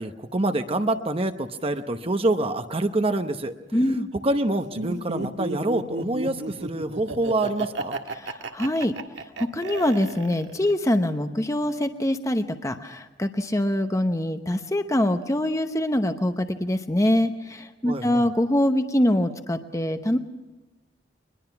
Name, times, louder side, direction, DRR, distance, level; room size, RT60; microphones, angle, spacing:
voice 1, 0.0-3.5 4.2-8.0 17.9-18.3, right 2 dB, 30° right, 8 dB, 0.9 m, -26 dB
voice 2, 3.7-4.1 8.1-8.9 9.4-20.2, left 1 dB, 15° left, 7 dB, 0.9 m, -24 dB
Laughter, 4.7-10.7, right 3 dB, 80° right, 1.6 m, -32 dB
22.5 x 21.5 x 5.9 m, 1.1 s
head